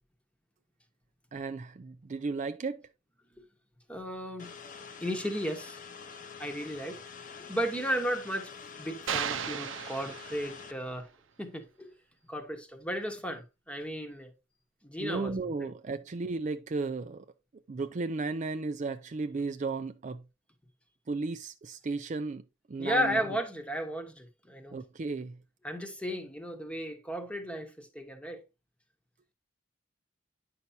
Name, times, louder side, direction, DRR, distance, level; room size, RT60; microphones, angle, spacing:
voice 1, 1.3-2.9 15.0-17.3 17.7-20.2 21.1-23.4 24.7-25.4, right 3 dB, 40° right, 0.4 m, -35 dB
voice 2, 3.9-4.5 5.0-5.8 6.4-7.0 7.5-8.5 8.8-11.1 11.4-11.9 12.3-14.3 14.8-15.5 22.8-24.8 25.6-28.4, equal, 5° left, 1.1 m, -34 dB
sound 1, 4.4-10.7, left 6 dB, 45° left, 0.8 m, -46 dB
sound 2, 9.1-10.8, right 8 dB, 80° right, 0.6 m, -35 dB
9.4 x 5.7 x 2.7 m
head